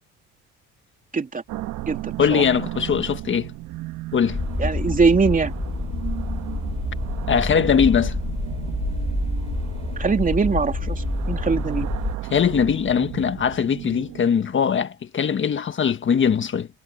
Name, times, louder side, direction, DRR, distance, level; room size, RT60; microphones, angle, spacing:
sound 1, 1.5-14.6, right 15 dB, 80° right, 1.5 m, -34 dB
voice 1, 2.2-3.5 4.1-4.4 7.3-8.1 12.3-16.7, left 7 dB, 40° left, 1.5 m, -21 dB
sound 2, 4.3-12.2, left 4 dB, 20° left, 2.9 m, -28 dB
voice 2, 4.6-5.5 10.0-11.9, right 4 dB, 25° right, 2.9 m, -21 dB
cardioid pair, 100°, 30 cm